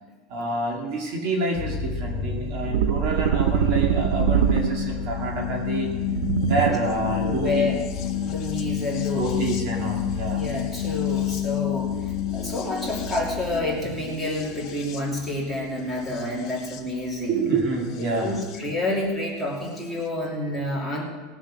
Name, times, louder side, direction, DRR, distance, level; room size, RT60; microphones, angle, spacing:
voice 1, 0.3-5.9 6.4-7.7 9.0-10.4 17.3-18.5, right 3 dB, 50° right, 0 dB, 2.6 m, -28 dB
sound 1, 1.6-18.6 19.8-19.9, left 9 dB, 35° left, 1.7 m, -30 dB
sound 2, 2.7-5.1 6.1-7.0, right 10 dB, 85° right, 0.4 m, -23 dB
voice 2, 7.1-7.8 8.2-9.5 10.3-17.4 18.0-21.0, left 1 dB, 5° right, -4 dB, 2.8 m, -29 dB
19.0 x 7.4 x 6.2 m, 1.4 s
supercardioid pair, 170°, 0 cm